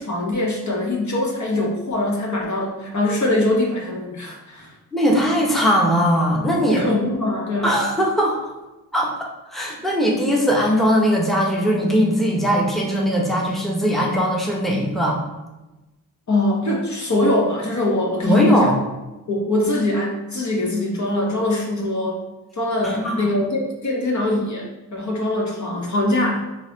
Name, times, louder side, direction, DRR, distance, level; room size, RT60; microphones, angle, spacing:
voice 1, 0.0-4.7 6.7-7.8 16.3-18.7 19.3-22.2 22.6-26.4, left 1 dB, 45° left, -1 dB, 1.0 m, -22 dB
voice 2, 4.9-6.8 7.6-8.4 8.9-15.2 18.2-18.8 22.8-23.3, equal, ahead, -2 dB, 1.0 m, -20 dB
3.8 x 2.8 x 2.8 m, 1.0 s
supercardioid pair, 40°, 41 cm